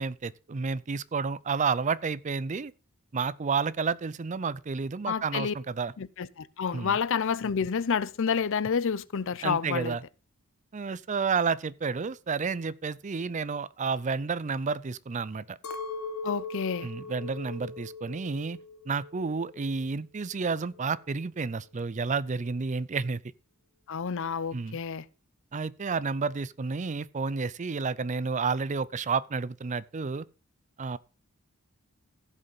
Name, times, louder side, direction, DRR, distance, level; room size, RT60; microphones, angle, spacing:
voice 1, 0.0-2.7 3.1-5.9 6.7-6.9 9.4-10.0 10.7-15.6 16.8-18.6 18.9-23.2 24.5-24.8 25.5-30.3 30.8-31.0, right 5 dB, 35° right, 0.5 m, -30 dB
voice 2, 5.1-5.5 6.0-10.0 16.2-16.9 23.9-25.0, left 6 dB, 60° left, 0.5 m, -29 dB
Chink clink, 15.6-20.0 20.3-21.1, left 3 dB, 90° left, 1.2 m, -40 dB
15.5 x 5.5 x 5.5 m
head